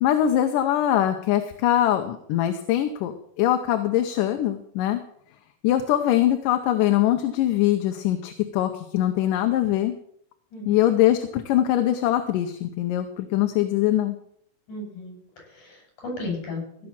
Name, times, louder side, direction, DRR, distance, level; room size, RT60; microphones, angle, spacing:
voice 1, 0.0-3.1 3.4-5.0 5.6-9.9 10.7-14.2, left 12 dB, 80° left, 6 dB, 2.4 m, -22 dB
voice 2, 14.7-16.9, left 2 dB, 65° left, 0 dB, 7.6 m, -35 dB
16.5 x 6.4 x 7.2 m, 0.69 s
omnidirectional pair, 3.8 m